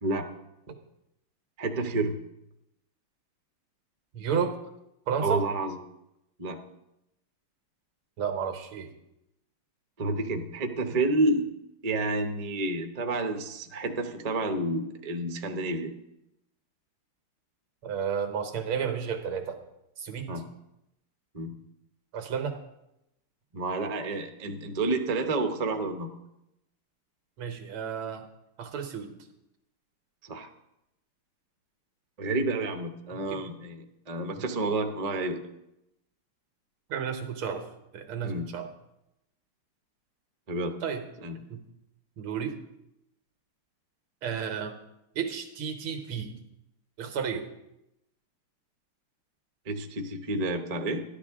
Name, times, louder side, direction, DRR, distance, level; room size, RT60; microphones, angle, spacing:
voice 1, 1.6-2.1 5.2-5.8 6.4-6.6 10.0-11.5 11.8-15.9 20.3-20.4 21.3-21.5 23.5-26.1 30.2-30.5 32.2-35.4 38.2-38.5 40.5-40.7 41.2-41.3 49.7-51.0, right 2 dB, 55° right, 5 dB, 0.4 m, -29 dB
voice 2, 4.1-4.6 5.1-5.5 8.2-8.9 17.8-19.6 20.0-20.4 22.1-22.6 27.4-28.3 28.6-29.2 33.1-33.5 34.4-34.5 36.9-38.7 40.8-41.1 41.5-41.6 42.2-42.6 44.2-44.8 45.2-46.3 47.0-47.5, right 7 dB, 75° right, 6 dB, 2.0 m, -32 dB
13.0 x 11.5 x 3.6 m, 0.86 s
omnidirectional pair, 2.4 m